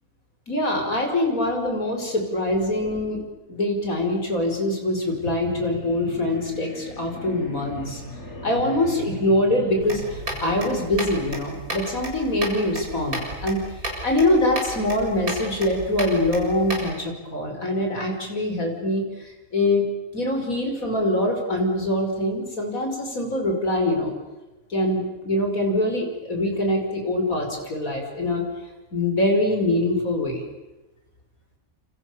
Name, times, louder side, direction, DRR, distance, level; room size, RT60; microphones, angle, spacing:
voice 1, 0.5-3.2 3.5-8.0 8.4-13.6 14.0-19.8 20.1-24.1 24.7-28.4 28.9-30.4, left 1 dB, 70° left, 3 dB, 5.8 m, -24 dB
sound 1, 5.1-11.3, left 1 dB, 50° left, 5.8 m, -38 dB
sound 2, 9.8-16.9, right 1 dB, 85° right, 7.9 m, -33 dB
29.5 x 29.0 x 7.0 m, 1.1 s
omnidirectional pair, 1.5 m